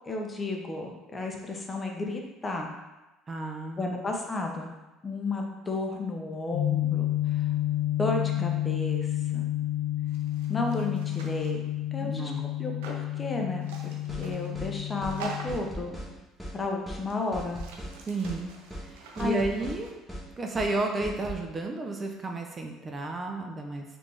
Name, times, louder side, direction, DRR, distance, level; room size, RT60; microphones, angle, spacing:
voice 1, 0.1-2.7 3.8-4.7 5.0-7.5 8.0-9.5 10.5-11.6 11.9-12.3 12.6-13.9 14.2-16.0 16.5-17.6 19.2-19.4, left 2 dB, 25° left, 1 dB, 0.6 m, -33 dB
voice 2, 3.3-4.0 8.4-8.5 12.0-12.5 18.1-18.5 18.8-19.9 20.4-23.8, right 2 dB, 30° right, 3 dB, 0.4 m, -32 dB
sound 1, 6.5-15.6, left 14 dB, 90° left, 0.5 m, -30 dB
sound 2, 10.1-11.6 12.8-13.0 13.6-14.6 15.1-15.7 16.5-16.6 16.9-19.9, right 4 dB, 90° right, 0.4 m, -45 dB
sound 3, 14.1-14.3 14.6-14.7 15.0-15.2 15.5-16.1 16.4-16.6 16.9-17.0 17.3-17.9 18.2-18.4 18.7-18.9 19.2-19.8 20.1-20.3 20.6-20.7 21.0-21.4, equal, ahead, 1.0 m, -38 dB
3.3 x 2.5 x 3.2 m, 1.0 s
supercardioid pair, 85°, 0 cm